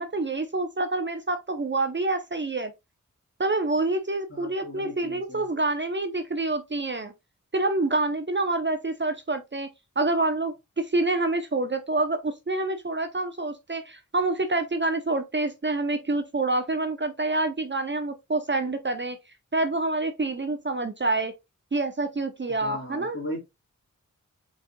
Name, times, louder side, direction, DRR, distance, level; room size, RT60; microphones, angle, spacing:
voice 1, 0.0-2.7 3.4-7.1 7.5-9.7 10.0-19.2 19.5-21.3 21.7-23.2, right 2 dB, 35° right, 0.7 m, -27 dB
voice 2, 4.3-5.5 22.6-23.4, left 1 dB, 40° left, 2.9 m, -37 dB
5.4 x 4.1 x 2.2 m
wide cardioid pair, 60°, 32 cm